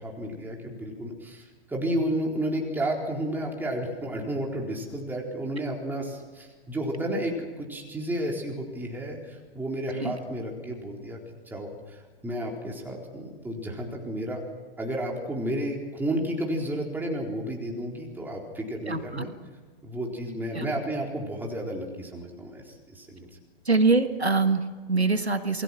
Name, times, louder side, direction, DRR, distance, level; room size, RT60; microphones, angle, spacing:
voice 1, 0.0-11.2 11.5-12.0 12.2-14.4 14.8-19.3 19.8-23.3, right 1 dB, 5° right, -1 dB, 4.1 m, -32 dB
voice 2, 18.9-19.3 20.5-20.8 23.7-25.6, right 3 dB, 90° right, 8 dB, 1.7 m, -24 dB
27.5 x 20.5 x 6.1 m, 1.4 s
figure-of-eight pair, 110°, 31 cm